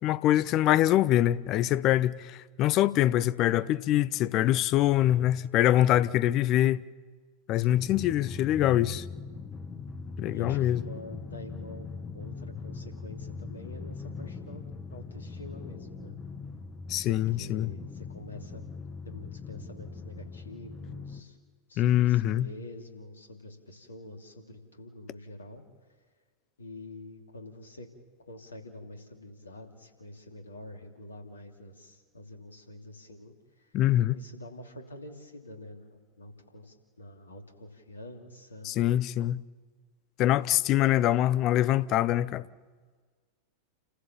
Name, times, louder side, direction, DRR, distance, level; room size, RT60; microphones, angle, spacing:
voice 1, 0.0-6.8 7.5-9.0 10.2-10.8 16.9-17.7 21.8-22.5 33.7-34.2 38.6-39.4 40.2-42.5, left 13 dB, 35° left, 0.6 m, -24 dB
voice 2, 7.5-7.9 10.3-11.9 12.1-14.6 14.9-16.1 17.1-18.6 19.0-21.4 21.7-25.6 26.6-27.9 28.3-33.8 34.1-38.8, left 1 dB, 75° left, 2.7 m, -46 dB
Drum, 7.8-21.2, left 4 dB, 20° left, 1.6 m, -41 dB
29.5 x 15.0 x 7.3 m
figure-of-eight pair, 90°, 0 cm